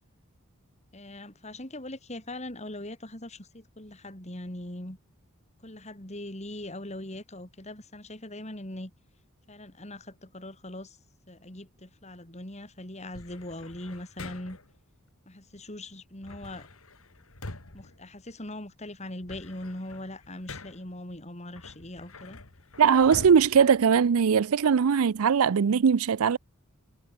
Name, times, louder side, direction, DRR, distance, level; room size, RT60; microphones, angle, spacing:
voice 1, 0.9-5.0 5.6-8.9 9.5-11.0 11.3-14.6 15.3-16.7 17.7-22.4, left 1 dB, 30° left, 3.4 m, -41 dB
sound 1, 13.1-14.8 16.2-18.7 19.1-21.0 21.5-24.6, left 2 dB, 75° left, 2.7 m, -45 dB
voice 2, 22.8-26.4, right 6 dB, 75° right, 0.5 m, -20 dB
head